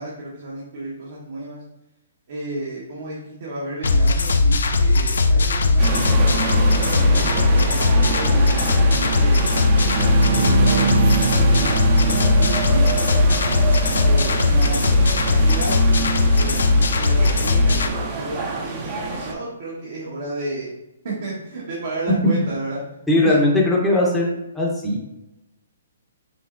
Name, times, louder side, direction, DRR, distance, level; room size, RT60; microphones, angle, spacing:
voice 1, 0.0-1.6 2.3-9.5 10.3-13.3 14.0-16.1 16.3-20.7 21.0-22.8 23.2-23.4, right 2 dB, 60° right, -6 dB, 1.3 m, -32 dB
sound 1, 3.8-17.9, left 3 dB, 80° left, 0.4 m, -18 dB
sound 2, 5.8-19.3, right 4 dB, 30° right, 0.7 m, -27 dB
Bowed string instrument, 9.5-13.1, right 6 dB, 85° right, 0.4 m, -24 dB
voice 2, 23.1-25.0, left 1 dB, 5° left, -5 dB, 0.8 m, -19 dB
5.9 x 2.9 x 2.5 m, 0.91 s
hypercardioid pair, 155°, 0 cm